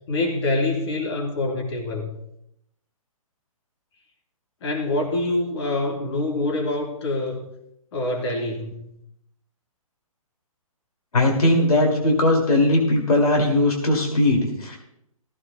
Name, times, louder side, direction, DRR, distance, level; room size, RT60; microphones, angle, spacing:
voice 1, 0.1-2.1 4.6-7.4 7.9-8.9, left 2 dB, 50° left, 2 dB, 3.3 m, -25 dB
voice 2, 11.1-14.8, left 1 dB, 85° left, 1 dB, 2.5 m, -19 dB
15.5 x 15.0 x 2.2 m, 0.76 s
hypercardioid pair, 135°, 18 cm